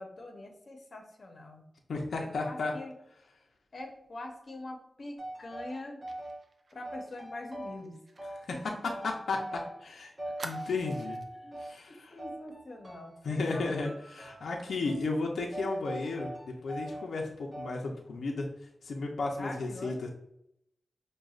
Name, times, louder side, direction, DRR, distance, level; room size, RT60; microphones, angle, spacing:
voice 1, 0.0-1.7 2.2-2.9 3.7-6.0 6.7-8.0 8.5-8.8 9.0-9.1 10.2-10.6 11.4-11.6 11.9-13.9 19.4-20.0, left 2 dB, 45° left, 2 dB, 0.7 m, -44 dB
voice 2, 1.9-2.7 8.3-10.1 10.4-11.2 11.6-12.2 13.2-18.5 18.8-20.1, left 3 dB, 80° left, 0 dB, 0.5 m, -34 dB
sound 1, 5.2-6.4 6.8-7.9 8.2-9.9 10.2-11.8 12.2-13.2 13.5-14.5 14.8-15.1 15.5-17.1 17.5-17.9, right 1 dB, 25° right, 0.8 m, -42 dB
Fire, 6.1-9.5 9.8-9.9 10.4-11.3 11.8-11.9 12.3-12.5, right 2 dB, 45° right, 0.4 m, -48 dB
6.2 x 2.2 x 2.4 m, 0.79 s
wide cardioid pair, 140°, 0 cm